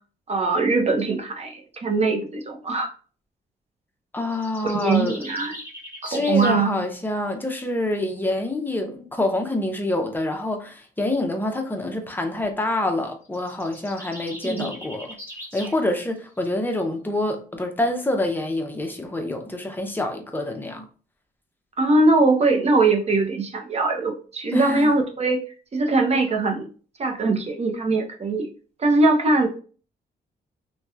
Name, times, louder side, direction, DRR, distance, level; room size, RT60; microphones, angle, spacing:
voice 1, 0.3-2.9 4.6-5.6 6.0-6.8 14.4-14.7 21.8-25.4 25.7-26.7 27.0-28.5 28.8-29.5, right 3 dB, 40° right, 0.7 m, -21 dB
voice 2, 4.1-5.2 6.1-15.2 15.5-20.9 24.5-24.9, left 1 dB, 10° left, 0.6 m, -26 dB
sound 1, 4.3-6.6 13.2-15.8, equal, 15° right, 1.0 m, -39 dB
2.8 x 2.2 x 2.4 m
cardioid pair, 85°, 17 cm